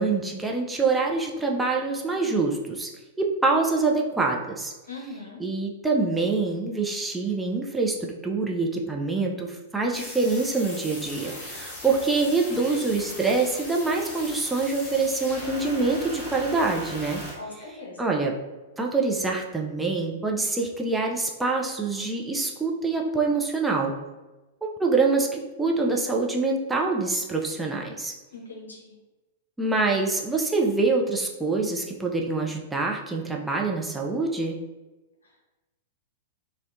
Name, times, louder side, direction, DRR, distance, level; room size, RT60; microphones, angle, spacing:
voice 1, 0.0-2.9 3.2-4.7 5.4-17.2 17.6-17.7 18.0-18.4 18.8-23.9 24.6-28.1 29.6-34.6, right 3 dB, 5° right, -1 dB, 0.3 m, -25 dB
voice 2, 4.9-5.4 17.4-18.1 28.3-28.9, left 2 dB, 75° left, -1 dB, 0.6 m, -40 dB
sound 1, 9.9-17.3, left 1 dB, 35° left, 1.0 m, -39 dB
2.6 x 2.0 x 2.5 m, 1.1 s
figure-of-eight pair, 100°, 0 cm